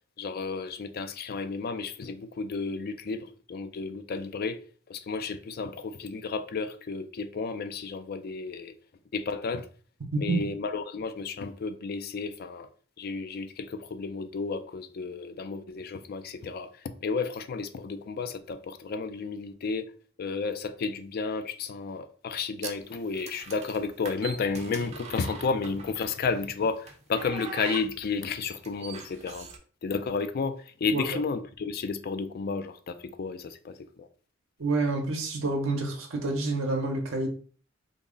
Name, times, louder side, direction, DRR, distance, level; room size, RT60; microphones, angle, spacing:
voice 1, 0.2-4.6 4.9-8.7 9.1-9.7 10.2-12.7 13.0-19.9 20.2-29.5 29.8-34.1, left 4 dB, 50° left, 0.4 m, -32 dB
sound 1, 22.6-26.2 26.9-29.6, right 5 dB, 35° right, 0.6 m, -42 dB
voice 2, 34.6-37.3, right 2 dB, 85° right, 0.7 m, -28 dB
3.6 x 2.1 x 3.7 m
head